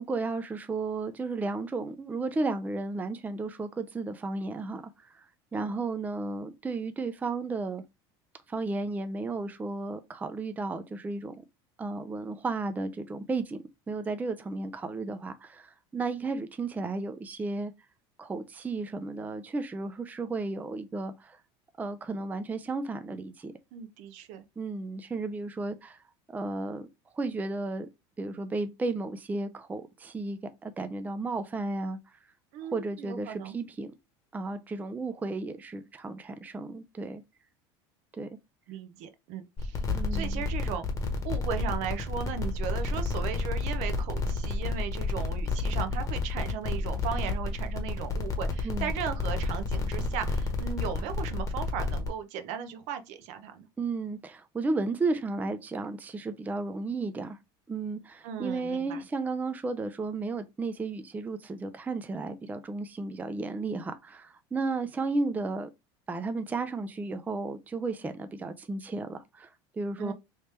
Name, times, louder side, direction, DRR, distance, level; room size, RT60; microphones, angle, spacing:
voice 1, 0.0-5.3 5.5-7.8 8.5-11.3 11.8-17.7 18.2-21.4 21.8-23.5 24.6-26.0 26.3-26.9 27.1-27.9 28.2-32.0 32.7-33.9 34.3-37.2 38.2-38.3 39.9-40.4 48.6-48.9 53.8-57.4 57.7-65.7 66.1-70.1, right 3 dB, 10° right, 0.4 m, -33 dB
voice 2, 23.7-24.4 32.5-33.6 38.7-39.8 40.1-40.9 41.2-53.7 58.2-59.0 70.0-70.1, right 8 dB, 60° right, 0.7 m, -37 dB
sound 1, 39.6-52.1, left 3 dB, 25° left, 1.0 m, -30 dB
3.2 x 2.9 x 3.2 m
supercardioid pair, 105°, 13 cm